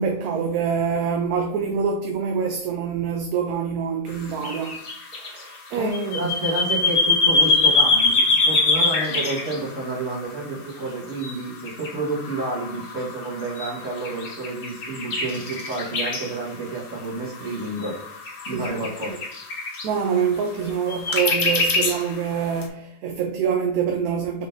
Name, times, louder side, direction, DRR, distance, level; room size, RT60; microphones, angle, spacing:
voice 1, 0.0-4.8 5.1-6.3 18.5-18.7 19.1-19.2 19.8-24.5, right 6 dB, 75° right, 1.1 m, -25 dB
sound 1, 4.4-10.4 11.2-11.4 11.7-16.4 17.3-19.9 20.9-22.2 22.6-22.7, left 3 dB, 45° left, 0.9 m, -23 dB
voice 2, 5.7-17.9 18.5-19.2, right 2 dB, 55° right, 1.7 m, -30 dB
5.4 x 3.8 x 2.6 m
omnidirectional pair, 1.6 m